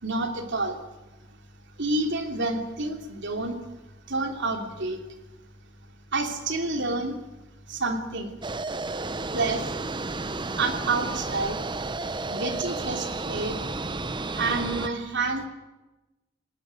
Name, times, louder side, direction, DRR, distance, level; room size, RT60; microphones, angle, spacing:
voice 1, 0.0-0.8 1.8-3.6 4.1-5.0 6.1-7.2 7.7-8.4 9.3-9.7 10.5-11.6 12.3-13.6 14.3-15.5, right 3 dB, 55° right, 5 dB, 3.1 m, -28 dB
sound 1, 8.4-14.9, right 3 dB, 20° right, 0.8 m, -32 dB
20.0 x 18.5 x 9.6 m, 1.1 s
head